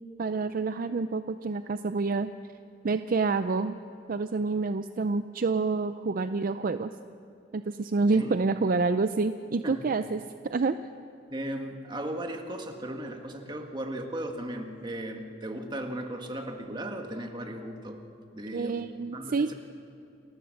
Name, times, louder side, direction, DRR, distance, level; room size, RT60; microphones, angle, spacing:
voice 1, 0.2-2.3 2.8-3.8 4.1-6.9 7.5-10.8 18.5-19.5, right 4 dB, 50° right, 11 dB, 0.5 m, -28 dB
voice 2, 11.3-18.0 18.3-18.9 19.1-19.5, right 1 dB, 25° right, 4 dB, 1.6 m, -36 dB
29.5 x 15.0 x 6.5 m, 2.7 s
head